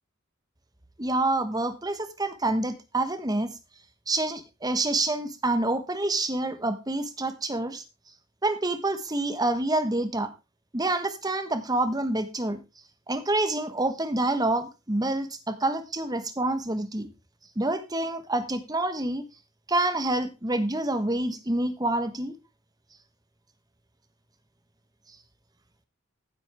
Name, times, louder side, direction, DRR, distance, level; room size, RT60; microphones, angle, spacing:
voice 1, 1.0-3.5 4.1-7.8 8.4-10.3 10.7-12.6 13.1-17.1 17.5-19.2 19.7-22.4, right 2 dB, 20° right, 10 dB, 1.3 m, -27 dB
15.0 x 8.2 x 3.6 m, 0.27 s
head